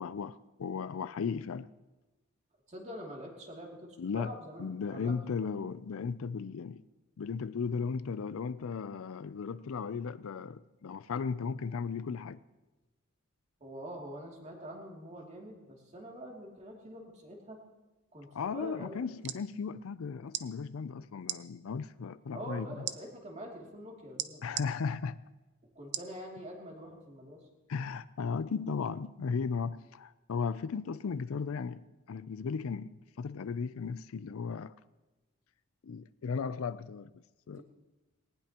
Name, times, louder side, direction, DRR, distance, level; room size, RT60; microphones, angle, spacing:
voice 1, 0.0-1.7 4.0-4.3 4.6-6.8 7.2-12.4 18.3-22.8 24.4-25.2 27.7-34.7 35.8-37.6, left 5 dB, 70° left, 0.4 m, -36 dB
voice 2, 2.7-5.1 13.6-17.6 18.1-19.0 22.3-24.6 25.7-27.4 37.6-37.7, right 1 dB, 35° right, 2.6 m, -45 dB
sound 1, 19.0-19.4 20.3-20.5 21.2-21.4 22.9-23.0 24.2-24.7 25.9-26.1 26.7-26.8, right 12 dB, 55° right, 0.6 m, -36 dB
19.0 x 19.0 x 2.9 m
head